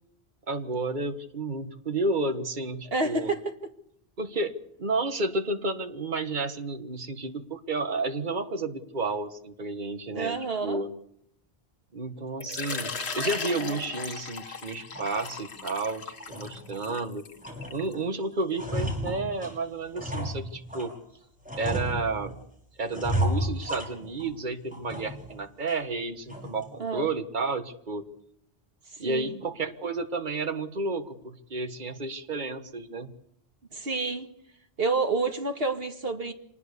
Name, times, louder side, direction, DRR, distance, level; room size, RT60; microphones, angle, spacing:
voice 1, 0.5-3.3 4.2-4.5 4.8-10.4 10.6-10.9 11.9-17.2 17.7-20.9 21.5-22.3 22.8-28.0 29.0-33.1, right 3 dB, 50° right, 8 dB, 1.7 m, -31 dB
voice 2, 2.9-3.4 10.1-10.8 13.5-13.8 26.8-27.1 28.9-29.4 33.7-34.3 34.8-36.3, right 3 dB, 70° right, 5 dB, 2.4 m, -29 dB
Water / Liquid, 12.4-17.9, left 4 dB, 90° left, 1.8 m, -36 dB
sound 1, 14.9-15.1 15.6-15.7 16.1-17.0 17.4-18.1 18.3-21.0 21.5-22.4 22.9-24.4 24.7-25.3 25.7-25.8 26.3-26.7, equal, 5° right, 5.9 m, -33 dB
26.0 x 20.0 x 6.9 m, 0.72 s
omnidirectional pair, 1.1 m